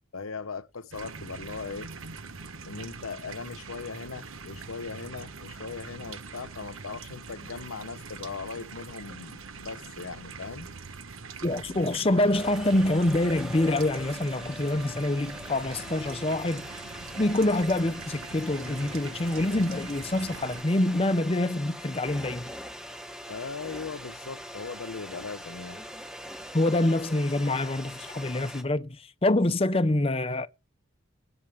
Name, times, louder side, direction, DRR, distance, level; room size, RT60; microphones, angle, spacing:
voice 1, 0.1-1.9 2.6-10.7 23.3-25.8, left 4 dB, 90° left, 0.9 m, -39 dB
sound 1, 0.9-20.6, right 4 dB, 80° right, 1.1 m, -43 dB
voice 2, 11.4-16.6 17.2-22.5 26.5-30.5, left 1 dB, 30° left, 0.6 m, -26 dB
sound 2, 12.3-28.6, equal, 5° right, 1.3 m, -42 dB
20.0 x 8.8 x 3.5 m
head